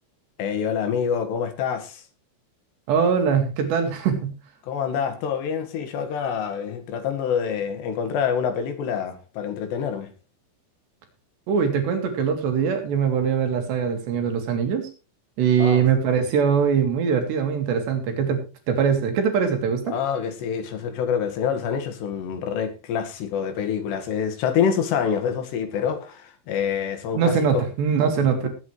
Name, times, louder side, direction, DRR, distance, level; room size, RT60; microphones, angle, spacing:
voice 1, 0.4-2.0 4.6-10.1 15.6-15.8 19.9-27.6 28.2-28.5, left 7 dB, 70° left, 3.8 m, -26 dB
voice 2, 2.9-4.4 11.5-14.9 15.4-20.0 27.1-28.5, right 7 dB, 70° right, 4.3 m, -22 dB
19.0 x 8.7 x 3.3 m
omnidirectional pair, 5.2 m